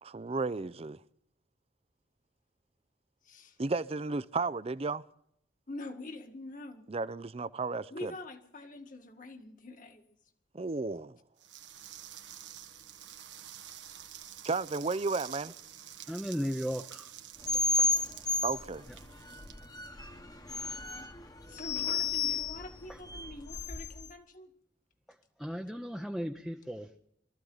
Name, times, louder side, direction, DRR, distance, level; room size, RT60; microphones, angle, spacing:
voice 1, 0.0-1.0 3.6-5.0 6.9-8.1 10.5-11.2 14.4-15.5 18.4-18.9, right 3 dB, 35° right, 0.6 m, -33 dB
voice 2, 3.2-3.6 5.7-6.8 7.9-10.0 21.5-24.5, left 2 dB, 45° left, 1.9 m, -45 dB
sound 1, 11.4-20.4, right 10 dB, 90° right, 1.4 m, -49 dB
voice 3, 16.1-17.1 17.4-17.9 18.9-19.0 22.9-23.0 25.1-27.0, equal, ahead, 0.7 m, -37 dB
sound 2, 17.4-24.1, left 4 dB, 20° left, 1.3 m, -33 dB
24.0 x 14.5 x 4.0 m
head